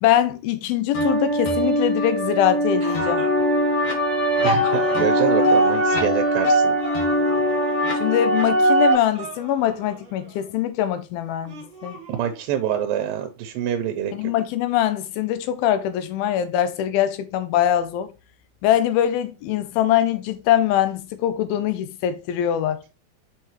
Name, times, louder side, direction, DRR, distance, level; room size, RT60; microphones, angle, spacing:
voice 1, 0.0-3.3 7.9-12.0 14.1-18.1 18.6-22.8, left 11 dB, 85° left, 2.5 m, -22 dB
sound 1, 0.9-8.9, equal, 60° left, 1.6 m, -20 dB
sound 2, 2.8-3.4 4.6-6.0 6.8-8.3 8.7-10.5 11.4-12.5, right 3 dB, 40° right, 1.7 m, -38 dB
voice 2, 4.4-6.8 12.1-14.1, right 10 dB, 80° right, 2.3 m, -26 dB
5.6 x 5.6 x 3.0 m
omnidirectional pair, 4.2 m